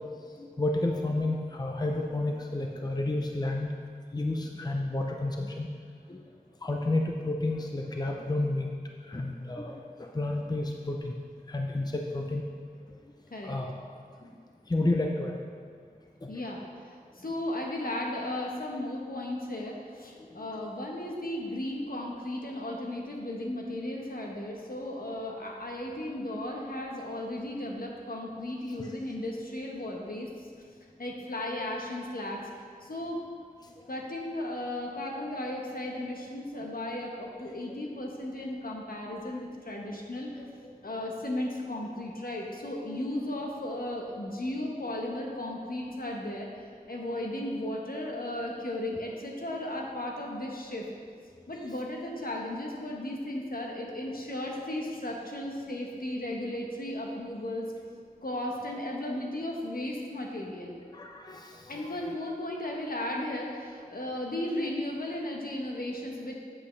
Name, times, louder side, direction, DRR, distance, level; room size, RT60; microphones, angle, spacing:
voice 1, 0.4-3.7 4.1-5.7 6.1-6.3 6.6-8.7 9.1-11.1 11.5-12.4 13.4-13.9 14.2-14.3 14.7-15.3 16.2-16.3 28.8-28.9 40.4-40.7 60.9-62.2, left 2 dB, 25° left, 1 dB, 0.6 m, -31 dB
voice 2, 16.3-30.5 31.0-32.4 32.8-33.2 33.9-40.3 40.8-50.9 51.5-57.7 58.2-60.8 61.7-66.4, left 1 dB, 70° left, -1 dB, 1.2 m, -35 dB
8.4 x 7.5 x 3.3 m, 2.1 s
wide cardioid pair, 60°, 16 cm